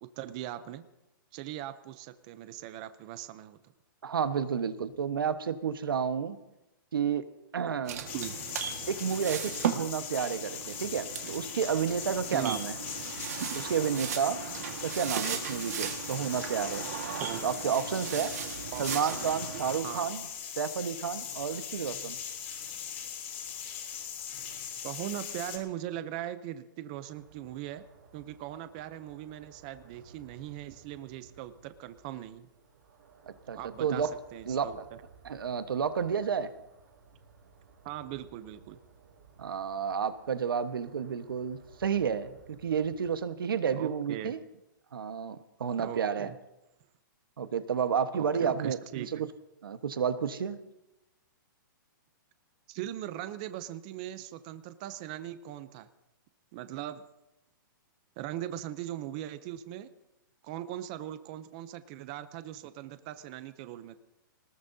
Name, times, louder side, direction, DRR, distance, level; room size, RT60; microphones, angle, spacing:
voice 1, 0.0-0.8 1.3-3.6 8.1-8.3 12.3-12.6 17.2-17.4 18.7-18.8 19.1-19.4 19.8-20.1 24.8-27.9 28.1-32.5 33.5-34.8 37.8-38.8 43.8-44.3 45.8-46.4 48.2-49.2 52.7-55.9 56.5-57.0 58.2-59.9 60.4-64.0, right 12 dB, 20° right, 12 dB, 0.5 m, -40 dB
voice 2, 4.0-6.4 6.9-7.3 7.5-8.1 8.9-12.7 13.5-14.4 14.8-16.9 17.4-18.3 18.8-20.2 20.6-22.2 33.5-34.1 34.5-34.7 35.2-36.5 39.4-44.4 44.9-46.3 47.4-49.3 49.6-50.6, right 7 dB, 85° right, 10 dB, 1.2 m, -31 dB
sound 1, 7.9-19.8, right 8 dB, 45° right, 1.6 m, -37 dB
sound 2, 8.1-25.6, left 8 dB, 35° left, 3.2 m, -40 dB
sound 3, 27.1-43.2, right 5 dB, 60° right, 5.4 m, -58 dB
22.5 x 19.5 x 2.7 m, 0.93 s
hypercardioid pair, 175°, 11 cm